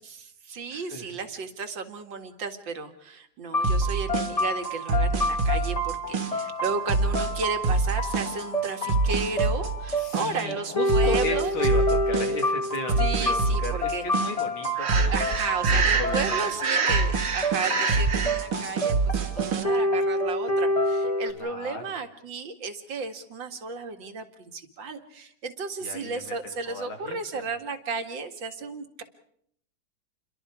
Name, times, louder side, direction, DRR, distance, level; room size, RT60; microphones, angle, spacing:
voice 1, 0.0-11.5 13.0-14.3 15.1-19.0 19.3-29.0, right 4 dB, 65° right, 6 dB, 2.5 m, -34 dB
voice 2, 0.7-1.1 10.0-15.4 15.7-16.6 21.3-22.0 25.8-27.5, left 3 dB, 75° left, 4 dB, 3.5 m, -35 dB
sound 1, 3.5-21.3, equal, 20° left, 1.6 m, -28 dB
sound 2, 3.6-19.6, right 3 dB, 80° right, 2.6 m, -26 dB
Breathing, 14.8-18.4, right 5 dB, 40° right, 1.1 m, -27 dB
29.0 x 23.0 x 4.9 m, 0.70 s
omnidirectional pair, 2.3 m